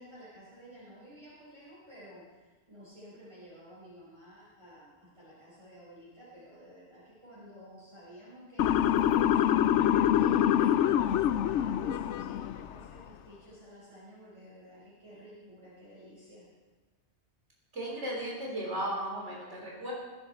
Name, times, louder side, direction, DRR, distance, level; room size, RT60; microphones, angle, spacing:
voice 1, 0.0-9.6 10.0-16.4, equal, 25° right, -10 dB, 5.0 m, -51 dB
Motor vehicle (road) / Siren, 8.6-12.7, left 10 dB, 90° left, 0.9 m, -25 dB
voice 2, 17.7-19.9, right 1 dB, 85° right, -3 dB, 3.9 m, -35 dB
20.5 x 10.5 x 4.4 m, 1.3 s
omnidirectional pair, 1.2 m